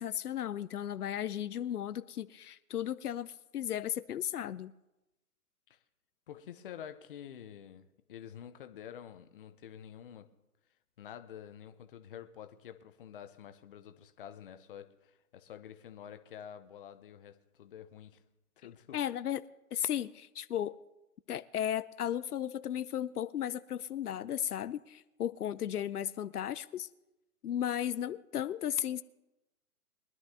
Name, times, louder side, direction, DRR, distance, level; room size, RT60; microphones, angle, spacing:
voice 1, 0.0-4.7 18.9-19.4 19.7-20.7 21.3-26.9 27.4-29.0, left 10 dB, 80° left, 14 dB, 0.6 m, -35 dB
voice 2, 6.3-10.3 11.0-18.2 18.6-19.0, left 9 dB, 35° left, 9 dB, 0.8 m, -49 dB
23.0 x 11.0 x 2.8 m, 0.97 s
hypercardioid pair, 145°, 45 cm